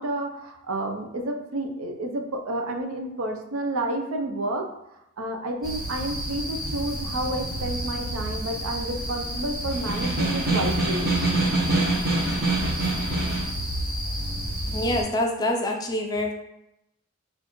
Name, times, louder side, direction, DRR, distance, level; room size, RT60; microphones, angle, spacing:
voice 1, 0.0-4.7 5.2-11.1, right 1 dB, 70° right, 4 dB, 0.5 m, -30 dB
sound 1, 5.6-15.0, equal, ahead, 1.1 m, -31 dB
Snare drum, 9.7-13.6, right 2 dB, 45° right, 1.0 m, -25 dB
voice 2, 14.7-16.3, left 1 dB, 20° left, 1 dB, 0.3 m, -26 dB
4.2 x 2.5 x 3.0 m, 0.86 s
head